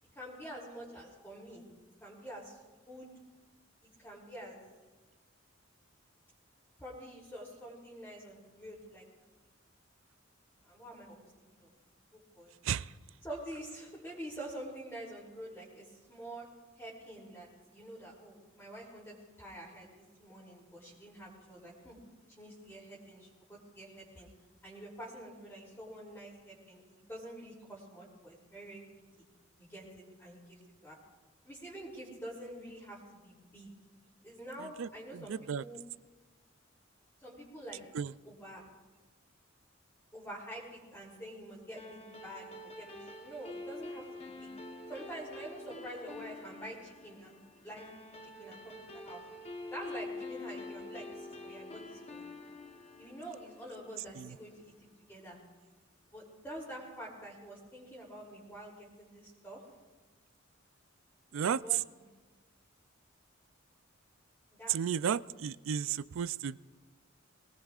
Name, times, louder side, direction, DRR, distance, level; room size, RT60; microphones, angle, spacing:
voice 1, 0.1-1.6 2.0-2.6 2.9-3.1 3.8-4.6 6.8-9.0 10.6-11.7 12.1-12.5 13.2-16.5 16.8-22.0 22.3-24.3 24.6-28.8 29.6-31.0 31.4-33.7 34.2-35.8 37.2-37.8 38.2-38.6 40.1-44.5 44.9-47.9 48.2-49.2 49.7-52.3 53.0-55.4 56.1-59.6 61.4-62.1 64.6-65.0, right 1 dB, 10° left, -7 dB, 2.9 m, -47 dB
voice 2, 34.6-35.6 37.9-38.1 54.0-54.4 61.3-61.8 64.7-66.6, right 8 dB, 85° right, 18 dB, 0.4 m, -33 dB
sound 1, 41.8-54.5, left 2 dB, 30° left, 1.0 m, -47 dB
22.5 x 18.5 x 2.4 m, 1.2 s
head